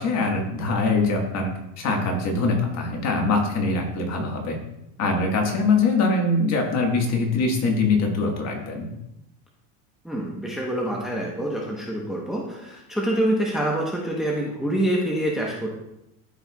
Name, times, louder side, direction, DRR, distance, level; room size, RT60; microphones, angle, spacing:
voice 1, 0.0-4.6 5.0-8.9, left 3 dB, 35° left, 1 dB, 1.6 m, -23 dB
voice 2, 10.0-15.7, right 1 dB, ahead, -2 dB, 0.9 m, -26 dB
13.0 x 4.5 x 2.3 m, 0.85 s
supercardioid pair, 135°, 42 cm